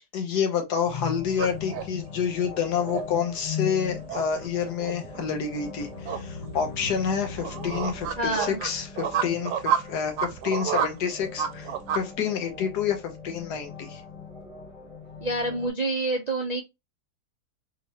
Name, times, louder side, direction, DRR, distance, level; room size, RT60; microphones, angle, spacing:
voice 1, 0.1-14.0, left 7 dB, 80° left, 1.5 m, -28 dB
sound 1, 0.9-15.7, left 6 dB, 20° left, 1.3 m, -40 dB
sound 2, 1.3-12.1, right 8 dB, 90° right, 1.2 m, -31 dB
sound 3, 5.8-8.9, left 2 dB, 50° left, 0.4 m, -41 dB
voice 2, 8.2-8.6 15.2-16.6, right 2 dB, 55° right, 0.4 m, -27 dB
3.7 x 2.8 x 2.9 m
omnidirectional pair, 1.7 m